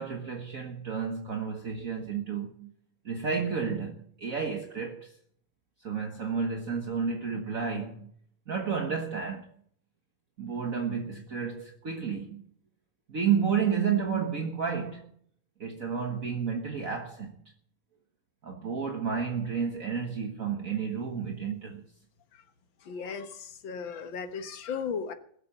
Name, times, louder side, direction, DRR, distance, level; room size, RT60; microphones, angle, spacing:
voice 1, 0.0-2.7 3.0-5.1 5.8-8.1 8.5-9.5 10.4-12.5 13.1-15.1 15.6-17.4 18.4-21.8, right 6 dB, 45° right, 1.7 m, -31 dB
voice 2, 22.9-25.1, left 6 dB, 75° left, 2.0 m, -36 dB
21.5 x 7.6 x 7.3 m
omnidirectional pair, 2.1 m